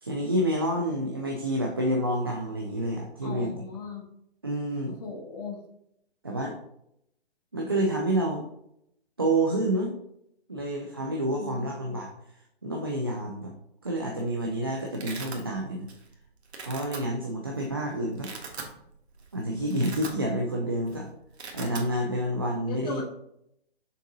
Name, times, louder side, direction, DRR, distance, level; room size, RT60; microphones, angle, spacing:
voice 1, 0.0-3.7 4.4-5.0 6.2-6.6 7.5-8.5 9.2-10.0 10.5-12.1 12.6-13.5 13.8-15.9 16.6-18.3 19.3-21.1 21.5-23.0, right 1 dB, 25° right, 0 dB, 0.3 m, -28 dB
voice 2, 3.2-4.0 4.8-5.6 11.3-11.7 22.7-23.0, left 4 dB, 40° left, -1 dB, 1.7 m, -38 dB
Domestic sounds home sounds, 13.9-14.3 14.5-15.4 15.9-16.1 16.4-17.0 17.6-17.7 18.1-18.7 19.1-19.3 19.6-20.5 20.8-21.0 21.2-21.9, right 4 dB, 80° right, 1.6 m, -40 dB
6.6 x 3.6 x 3.9 m, 0.76 s
hypercardioid pair, 165°, 32 cm